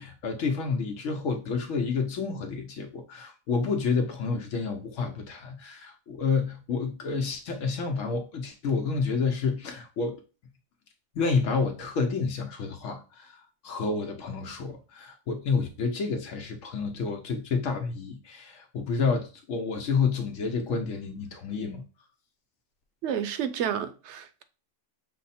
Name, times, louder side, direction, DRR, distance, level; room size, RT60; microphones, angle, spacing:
voice 1, 0.0-10.2 11.1-21.8, left 4 dB, 90° left, 1.1 m, -29 dB
voice 2, 23.0-24.4, right 9 dB, 70° right, 0.8 m, -30 dB
6.2 x 2.1 x 4.1 m
omnidirectional pair, 1.3 m